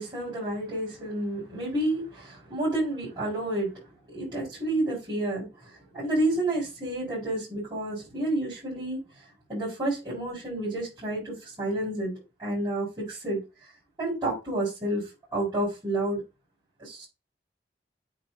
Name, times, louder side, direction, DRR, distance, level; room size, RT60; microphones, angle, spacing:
voice 1, 0.0-3.7 4.1-5.5 5.9-9.0 9.5-13.4 14.0-15.1 15.3-16.2 16.8-17.1, right 1 dB, 25° right, 3.9 m, -30 dB
7.9 x 2.7 x 5.2 m
head